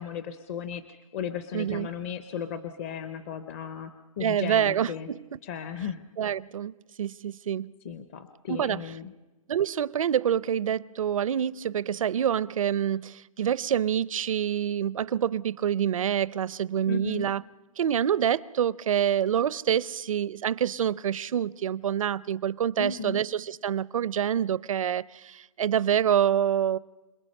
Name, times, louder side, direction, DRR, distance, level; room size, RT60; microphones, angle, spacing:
voice 1, 0.0-5.1 5.4-6.0 7.8-9.1 16.9-17.3 22.8-23.2, left 7 dB, 25° left, 0.6 m, -35 dB
voice 2, 1.5-1.9 4.2-5.2 6.2-6.7 7.0-7.7 8.5-8.8 9.5-17.4 17.8-26.8, right 9 dB, 70° right, 0.6 m, -26 dB
27.0 x 21.0 x 5.4 m
hypercardioid pair, 170°, 18 cm